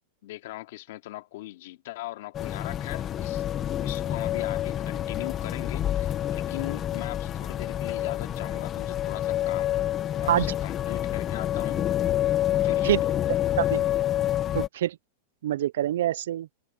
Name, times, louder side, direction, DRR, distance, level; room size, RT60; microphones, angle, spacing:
voice 1, 0.2-3.4 3.8-9.8 10.1-11.8 12.6-13.2, left 17 dB, 60° left, 2.4 m, -40 dB
sound 1, 2.3-14.7, left 12 dB, 25° left, 1.1 m, -28 dB
voice 2, 14.5-15.0 15.4-16.5, right 12 dB, 80° right, 0.4 m, -25 dB
supercardioid pair, 160°, 0 cm